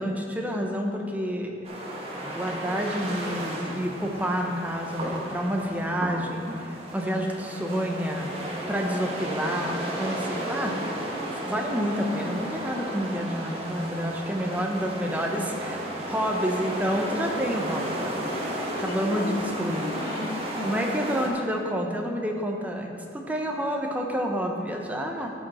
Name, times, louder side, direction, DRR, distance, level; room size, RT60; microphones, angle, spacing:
voice 1, 0.0-1.5 2.2-8.3 8.7-10.8 11.3-18.2 18.8-19.3 19.6-19.8 20.6-25.3, equal, 10° right, 1 dB, 0.8 m, -29 dB
sound 1, 1.6-21.3, right 1 dB, 35° right, 1.4 m, -34 dB
voice 2, 18.3-20.8 21.1-21.3, left 3 dB, 55° left, 4 dB, 0.6 m, -36 dB
14.0 x 5.1 x 4.2 m, 2.6 s
head